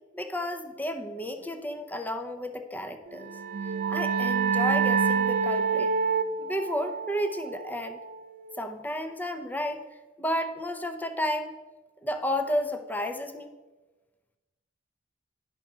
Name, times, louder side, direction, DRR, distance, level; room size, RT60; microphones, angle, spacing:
voice 1, 0.1-3.3 3.9-5.9 6.4-8.0 8.6-9.8 10.2-11.5 12.0-13.5, equal, 10° left, 7 dB, 0.7 m, -32 dB
sound 1, 3.2-8.6, right 5 dB, 50° right, 0.3 m, -27 dB
10.5 x 6.1 x 4.9 m, 1.2 s
head